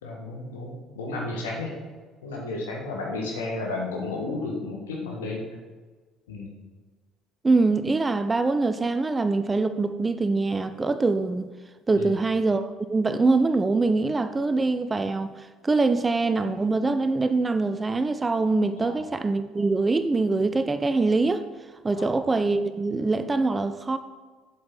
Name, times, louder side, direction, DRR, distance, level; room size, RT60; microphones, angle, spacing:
voice 1, 0.0-1.8 2.2-5.5 6.3-6.5 11.9-12.1 18.7-19.0 21.9-22.1, left 2 dB, 70° left, 1.7 m, -33 dB
voice 2, 7.4-11.5 11.9-21.4 21.8-24.0, right 3 dB, 20° right, 0.5 m, -24 dB
7.7 x 7.4 x 4.0 m
figure-of-eight pair, 55°, 0 cm